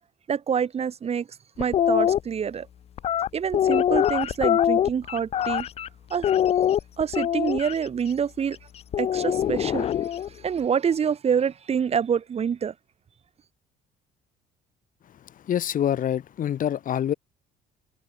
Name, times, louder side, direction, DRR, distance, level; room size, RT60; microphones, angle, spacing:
voice 1, 0.3-1.3 1.6-2.7 3.3-5.7 6.1-6.4 7.0-8.6 9.0-9.9 10.4-12.7, right 7 dB, 35° right, 1.4 m, -26 dB
sound 1, 1.6-2.2 3.0-5.9 6.2-7.7 8.9-10.3, left 10 dB, 40° left, 0.4 m, -23 dB
voice 2, 15.2-17.1, left 10 dB, 55° left, 3.1 m, -26 dB
cardioid pair, 110°, 17 cm